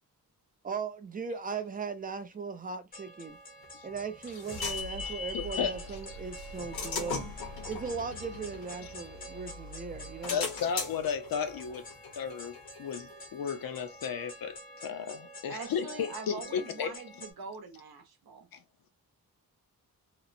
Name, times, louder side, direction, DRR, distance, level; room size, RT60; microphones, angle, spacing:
voice 1, 0.6-3.4 3.8-7.4 7.7-10.5, right 5 dB, 25° right, 0.3 m, -38 dB
sound 1, 2.9-17.3, left 1 dB, 25° left, 0.6 m, -48 dB
sound 2, 3.6-5.8 6.4-9.5 9.9-13.3, left 5 dB, 85° left, 1.0 m, -39 dB
sound 3, 4.2-13.9, equal, 50° right, 0.9 m, -48 dB
voice 2, 5.3-5.8 6.1-6.2 10.3-11.8 12.2-16.9 18.5-18.6, left 7 dB, 70° left, 0.6 m, -34 dB
voice 3, 15.5-18.5, right 4 dB, 80° right, 0.8 m, -43 dB
2.9 x 2.0 x 2.5 m
wide cardioid pair, 155°, 37 cm